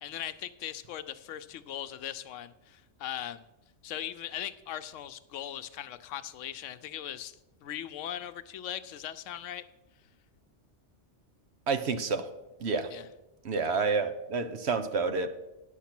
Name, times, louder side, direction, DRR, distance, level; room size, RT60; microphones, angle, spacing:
voice 1, 0.0-3.4 3.8-9.6 12.9-13.0, left 11 dB, 90° left, 12 dB, 0.9 m, -39 dB
voice 2, 11.7-12.3 12.6-12.9 13.4-15.3, right 4 dB, 65° right, 9 dB, 1.0 m, -29 dB
10.0 x 6.5 x 5.9 m, 0.98 s
omnidirectional pair, 1.3 m